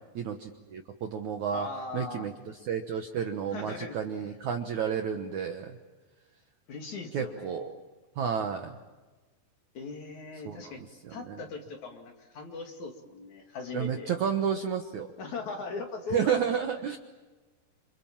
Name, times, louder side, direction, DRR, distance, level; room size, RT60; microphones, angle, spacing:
voice 1, 0.2-1.7 1.9-2.3 2.6-5.7 7.1-7.7 8.2-8.8 10.4-10.7 11.3-11.4 13.7-15.1 16.1-17.0, right 7 dB, 65° right, 5 dB, 1.9 m, -31 dB
voice 2, 1.5-2.3 3.5-4.3 6.7-7.6 9.7-10.8 11.1-14.1 15.2-16.4, left 4 dB, 50° left, 3 dB, 3.2 m, -39 dB
28.0 x 27.5 x 7.4 m, 1.3 s
omnidirectional pair, 5.0 m